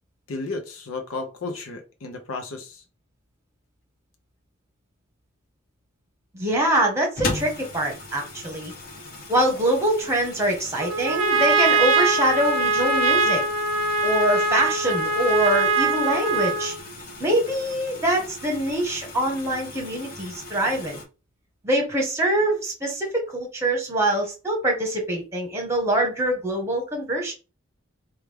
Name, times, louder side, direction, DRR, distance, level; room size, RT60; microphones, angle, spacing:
voice 1, 0.3-2.8, left 3 dB, 90° left, 0.7 m, -33 dB
voice 2, 6.3-8.7 9.3-13.5 14.0-16.7 17.2-21.0 21.6-27.3, right 1 dB, 15° right, 0.9 m, -24 dB
sound 1, 7.2-21.0, left 2 dB, 45° left, 0.9 m, -38 dB
Trumpet, 10.8-16.8, right 3 dB, 80° right, 0.5 m, -22 dB
3.2 x 2.3 x 3.4 m
head